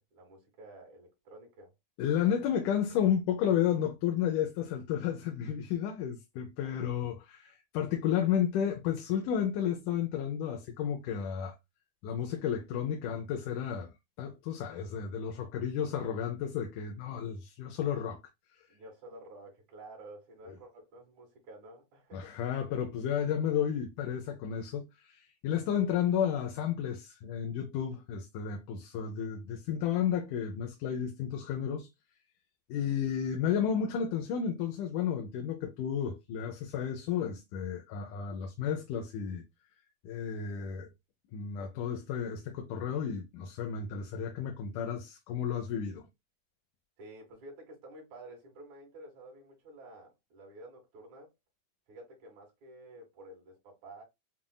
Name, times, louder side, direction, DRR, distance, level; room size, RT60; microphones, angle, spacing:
voice 1, 0.0-1.7 6.6-6.7 18.7-22.4 47.0-51.3 51.9-54.0, right 1 dB, 65° right, 3.2 m, -51 dB
voice 2, 2.0-11.6 12.0-18.2 22.1-31.9 32.7-39.4 40.0-40.9 41.3-46.1, left 8 dB, 85° left, 2.2 m, -32 dB
7.2 x 2.5 x 2.2 m
omnidirectional pair, 3.6 m